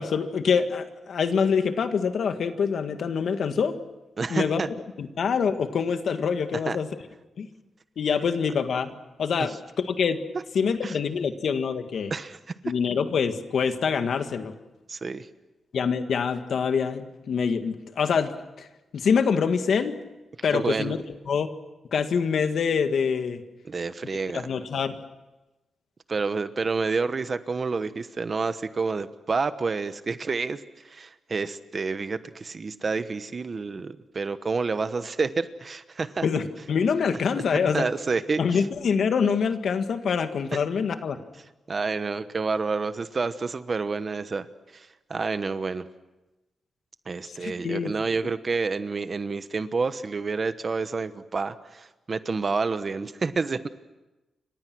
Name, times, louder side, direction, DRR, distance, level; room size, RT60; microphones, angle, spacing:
voice 1, 0.0-3.8 4.3-4.6 5.0-6.9 7.4-7.5 8.0-8.9 9.2-9.5 9.8-10.2 10.5-12.1 12.6-14.5 15.7-18.3 18.6-18.7 18.9-20.0 20.4-21.0 21.3-21.5 21.9-23.4 24.3-25.0 36.2-37.9 38.4-41.2 47.4-47.9, left 6 dB, 65° left, 8 dB, 1.9 m, -25 dB
voice 2, 4.2-4.7 6.7-6.8 9.4-9.5 10.8-11.0 12.1-12.4 14.9-15.3 20.5-20.9 23.6-24.5 26.1-30.6 30.8-36.3 37.5-38.6 41.7-44.5 44.7-45.9 47.1-53.7, right 4 dB, 35° right, 12 dB, 1.1 m, -29 dB
29.5 x 25.0 x 6.2 m, 1.1 s
wide cardioid pair, 130°, 0 cm